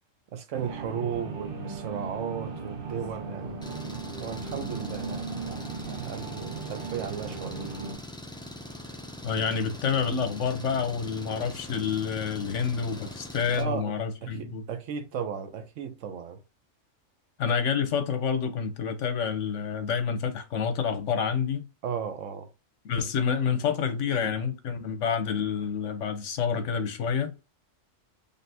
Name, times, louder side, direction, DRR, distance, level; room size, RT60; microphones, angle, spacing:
voice 1, 0.3-3.6 4.2-5.3 6.0-7.7 13.5-14.0 14.2-16.4 21.8-22.5 23.8-24.3, right 7 dB, 80° right, 1.1 m, -35 dB
sound 1, 0.5-7.9, right 4 dB, 50° right, 1.0 m, -37 dB
Engine, 3.6-13.6, equal, 5° left, 0.3 m, -42 dB
voice 2, 9.2-14.6 17.4-21.6 22.8-27.3, left 6 dB, 75° left, 1.2 m, -28 dB
4.1 x 3.5 x 2.7 m
omnidirectional pair, 1.3 m